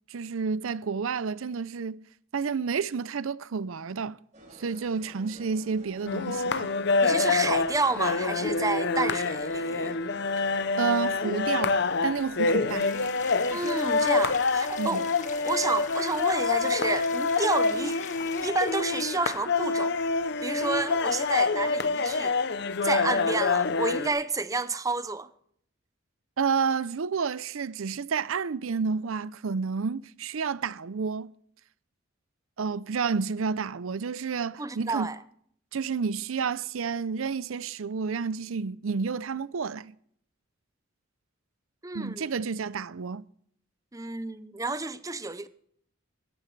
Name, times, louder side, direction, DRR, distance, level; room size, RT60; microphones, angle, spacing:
voice 1, 0.1-2.0 2.3-4.2 4.6-6.7 10.8-12.9 14.8-15.0 26.4-31.3 32.6-35.1 35.7-39.9 41.9-43.3, right 5 dB, 75° right, 0.5 m, -30 dB
sound 1, 4.3-21.8, right 1 dB, 35° right, 3.3 m, -52 dB
sound 2, 6.1-24.1, left 4 dB, 55° left, 0.7 m, -26 dB
voice 2, 7.0-10.0 13.5-15.1 15.4-18.0 18.4-20.0 20.4-22.4 22.8-25.3 34.6-35.2 41.8-42.3 43.9-45.5, right 3 dB, 15° right, 0.5 m, -30 dB
sound 3, 12.7-18.5, left 6 dB, 35° left, 1.7 m, -44 dB
16.5 x 13.5 x 3.3 m
head